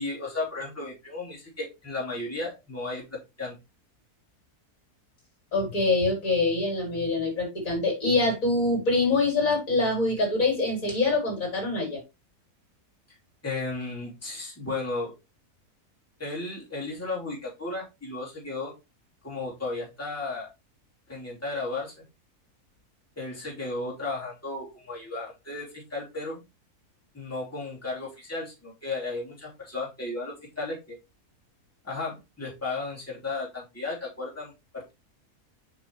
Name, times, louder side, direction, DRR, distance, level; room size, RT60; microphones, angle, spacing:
voice 1, 0.0-3.6 13.4-15.1 16.2-18.7 19.2-20.5 21.1-22.0 23.2-26.4 27.1-31.0 31.8-34.9, left 3 dB, 10° left, -5 dB, 3.1 m, -34 dB
voice 2, 5.5-12.0, left 3 dB, 60° left, 1 dB, 4.3 m, -25 dB
7.1 x 5.9 x 3.3 m, 0.24 s
omnidirectional pair, 1.6 m